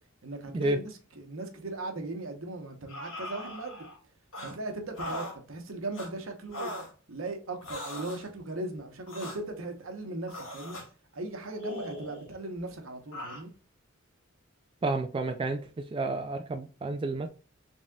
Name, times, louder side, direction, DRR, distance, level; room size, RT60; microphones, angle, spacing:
voice 1, 0.2-0.8 1.2-3.8 4.4-6.7 7.1-10.8 11.1-13.5, right 2 dB, 75° right, 1.0 m, -38 dB
sound 1, 2.9-4.0 4.3-4.5 5.0-5.4 5.9-6.1 6.5-6.9 7.6-8.2 9.1-9.4 10.3-10.9 11.6-12.3 13.1-13.4, left 1 dB, 70° left, 1.7 m, -39 dB
voice 2, 14.8-17.3, right 2 dB, 25° right, 0.3 m, -30 dB
4.1 x 3.6 x 2.3 m
head